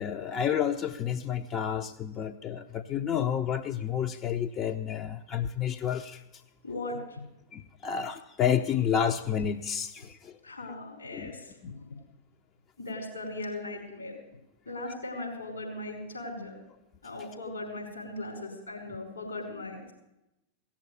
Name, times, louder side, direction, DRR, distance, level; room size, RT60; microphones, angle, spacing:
voice 1, 0.0-6.4 7.5-10.4 11.1-11.3 11.6-11.8 14.9-15.0, left 8 dB, 30° left, 6 dB, 0.6 m, -30 dB
voice 2, 6.6-7.2 10.4-11.5 12.8-14.1 14.7-16.6 17.0-19.9, left 2 dB, 75° left, 0 dB, 5.3 m, -38 dB
16.5 x 7.3 x 9.5 m, 0.94 s
figure-of-eight pair, 90°, 0 cm